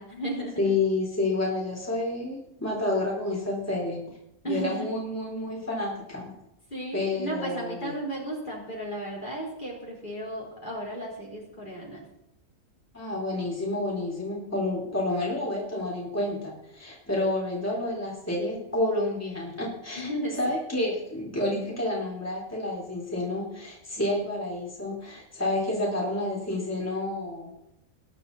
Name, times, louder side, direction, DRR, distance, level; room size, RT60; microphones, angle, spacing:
voice 1, 0.0-0.8 4.4-4.9 6.7-12.1 17.1-17.2 19.9-20.4, right 1 dB, 35° left, -3 dB, 4.4 m, -34 dB
voice 2, 0.6-4.0 4.4-6.3 6.9-7.9 12.9-20.1 20.4-27.5, left 2 dB, 10° left, -4 dB, 3.9 m, -29 dB
20.5 x 10.5 x 4.2 m, 0.83 s
omnidirectional pair, 1.4 m